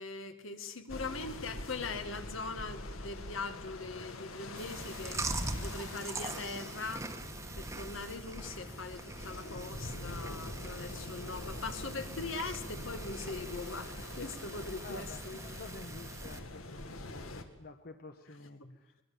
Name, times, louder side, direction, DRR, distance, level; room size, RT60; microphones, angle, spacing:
voice 1, 0.0-5.2 5.6-7.1 7.6-15.4 18.6-18.8, left 3 dB, 70° left, 8 dB, 1.9 m, -41 dB
sound 1, 0.9-17.4, left 2 dB, 85° left, 1.9 m, -45 dB
Chewing mastication, 4.6-16.4, right 2 dB, 15° right, 1.3 m, -42 dB
voice 2, 14.8-19.0, left 3 dB, 45° left, 7 dB, 1.1 m, -50 dB
22.5 x 21.0 x 7.0 m, 0.91 s
head